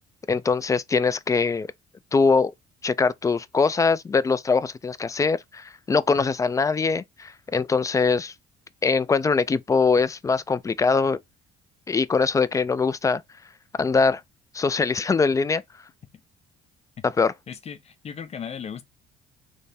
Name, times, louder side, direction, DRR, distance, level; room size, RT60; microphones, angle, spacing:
voice 1, 0.3-1.7 2.1-2.5 2.8-8.3 8.8-11.2 11.9-13.2 13.8-14.2 14.5-15.6 17.0-17.3, left 4 dB, 20° left, 0.3 m, -22 dB
voice 2, 17.5-18.8, left 7 dB, 40° left, 0.7 m, -36 dB
3.4 x 3.2 x 4.1 m
cardioid pair, 110°, 17 cm